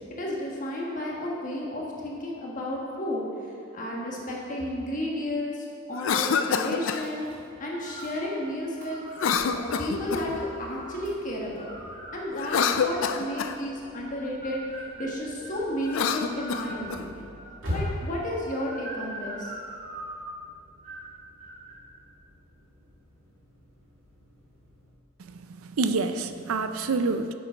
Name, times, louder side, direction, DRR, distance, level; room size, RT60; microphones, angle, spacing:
voice 1, 0.1-3.3 3.7-9.0 9.5-11.7 12.1-17.2 17.7-19.5, left 1 dB, 35° left, -3 dB, 1.4 m, -32 dB
Cough, 5.9-7.0 9.1-10.4 12.3-13.6 15.8-17.0, left 6 dB, 65° left, 0.4 m, -27 dB
sound 1, 7.0-24.9, left 1 dB, 65° right, 2.2 m, -44 dB
sound 2, 7.8-8.2 8.8-9.4 10.0-11.0 11.6-13.5 14.1-16.9 17.4-17.9 18.4-20.4 20.8-21.1 21.4-21.8, right 1 dB, 35° right, 1.3 m, -42 dB
voice 2, 25.2-27.3, right 3 dB, 80° right, 10 dB, 0.5 m, -28 dB
7.7 x 6.9 x 5.1 m, 2.6 s
head